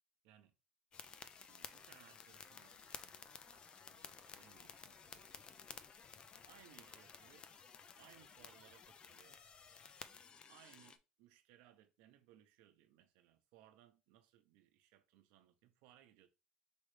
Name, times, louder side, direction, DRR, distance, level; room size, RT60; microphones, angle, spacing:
sound 1, 0.9-11.0, left 6 dB, 35° left, 0.5 m, -55 dB
voice 1, 1.4-5.4 6.4-7.6 8.0-9.5 10.5-16.3, right 12 dB, 80° right, 0.8 m, -66 dB
5.0 x 3.1 x 3.3 m
cardioid pair, 120°, 3 cm